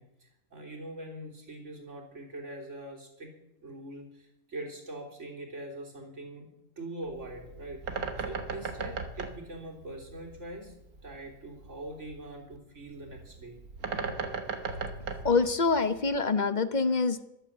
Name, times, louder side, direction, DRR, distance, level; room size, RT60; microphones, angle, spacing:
voice 1, 0.0-3.3 3.6-6.5 6.8-10.8 11.0-13.6, right 1 dB, 55° right, 0 dB, 3.6 m, -43 dB
Bird, 7.0-16.2, right 4 dB, 90° right, 1.8 m, -38 dB
voice 2, 15.2-17.2, left 4 dB, 40° left, 12 dB, 0.8 m, -25 dB
13.5 x 12.5 x 7.2 m, 0.87 s
omnidirectional pair, 1.5 m